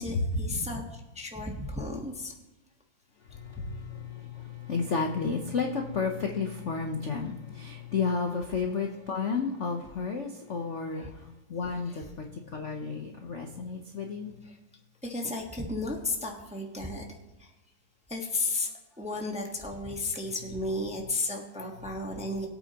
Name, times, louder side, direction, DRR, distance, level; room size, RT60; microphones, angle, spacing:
voice 1, 0.0-2.3 3.6-3.7 10.9-11.1 14.4-14.6 15.0-17.1 17.4-17.5 18.1-18.7 19.0-22.5, left 2 dB, 5° right, 1 dB, 0.9 m, -33 dB
voice 2, 3.3-14.3, left 5 dB, 55° left, 3 dB, 0.9 m, -32 dB
21.0 x 8.6 x 2.9 m, 1.0 s
omnidirectional pair, 2.2 m